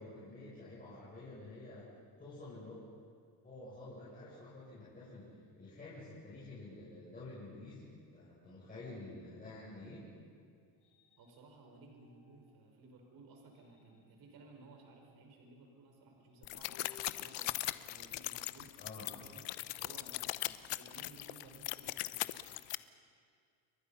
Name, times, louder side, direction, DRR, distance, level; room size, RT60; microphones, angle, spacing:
voice 1, 0.0-1.9 2.2-2.8 3.4-10.1 18.8-19.1, left 2 dB, 20° left, -9 dB, 7.9 m, -50 dB
sound 1, 10.6-12.7 13.3-18.4, left 5 dB, 45° left, 4.9 m, -67 dB
voice 2, 11.2-19.5 19.8-22.4, right 3 dB, 55° right, 2 dB, 5.6 m, -58 dB
sound 2, 16.4-22.8, left 18 dB, 80° left, 0.9 m, -40 dB
29.5 x 23.0 x 5.8 m, 2.2 s
cardioid pair, 130°, 43 cm